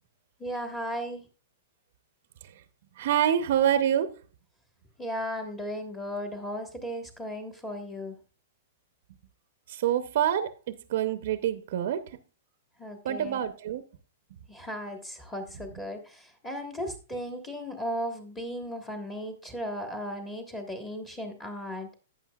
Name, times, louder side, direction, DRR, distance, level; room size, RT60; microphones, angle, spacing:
voice 1, 0.4-1.2 5.0-8.1 12.8-13.4 14.5-21.9, equal, 10° left, 1.4 m, -36 dB
voice 2, 3.0-4.1 9.7-12.1 13.0-13.8, right 10 dB, 55° right, 0.7 m, -26 dB
11.5 x 9.1 x 2.4 m
hypercardioid pair, 170°, 0 cm